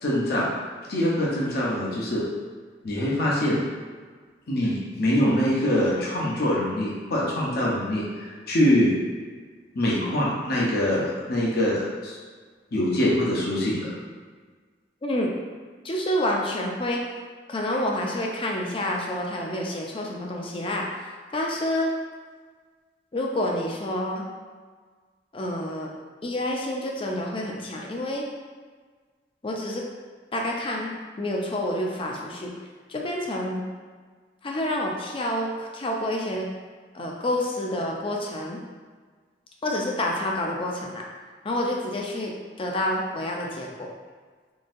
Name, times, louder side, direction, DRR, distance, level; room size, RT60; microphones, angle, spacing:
voice 1, 0.0-0.5 0.9-2.2 2.8-3.6 4.5-8.9 9.7-12.2 12.7-13.9, left 1 dB, 60° left, -5 dB, 0.7 m, -24 dB
voice 2, 15.8-17.0 17.5-20.9 21.3-21.9 23.1-24.2 25.3-25.9 26.2-28.2 29.4-29.8 30.3-30.9 31.2-32.5 32.9-33.6 34.4-36.5 36.9-38.6 39.6-41.0 41.4-42.3 42.6-43.9, left 1 dB, 30° left, -1 dB, 0.5 m, -28 dB
3.8 x 2.7 x 2.6 m, 1.5 s
head